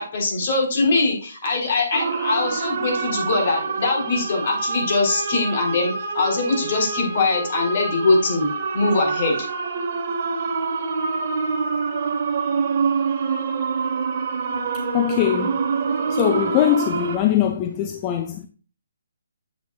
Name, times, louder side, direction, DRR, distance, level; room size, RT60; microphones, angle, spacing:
voice 1, 0.0-8.5 8.7-9.4, left 3 dB, 50° left, 3.9 m, -22 dB
sound 1, 1.9-17.2, right 5 dB, 40° right, 1.2 m, -26 dB
voice 2, 14.9-15.6 16.1-18.5, left 11 dB, 25° left, 0.5 m, -21 dB
8.3 x 8.0 x 2.4 m
hypercardioid pair, 150°, 0 cm